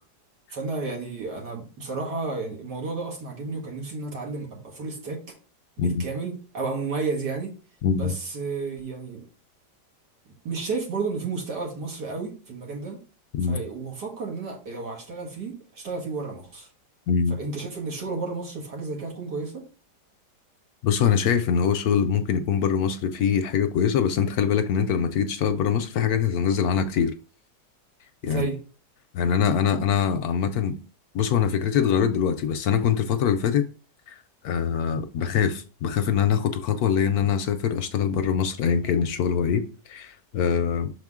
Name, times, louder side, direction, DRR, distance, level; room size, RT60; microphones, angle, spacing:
voice 1, 0.5-5.2 5.8-7.5 7.9-9.2 10.4-13.0 13.4-16.7 17.4-19.6 28.2-28.6, right 4 dB, 70° right, 2.3 m, -32 dB
voice 2, 7.8-8.1 13.4-13.6 17.1-17.4 20.8-27.1 28.2-28.5 29.1-30.7 31.1-33.6 34.1-34.2 34.4-40.9, left 7 dB, 70° left, 1.0 m, -23 dB
6.4 x 4.2 x 3.6 m
omnidirectional pair, 1.9 m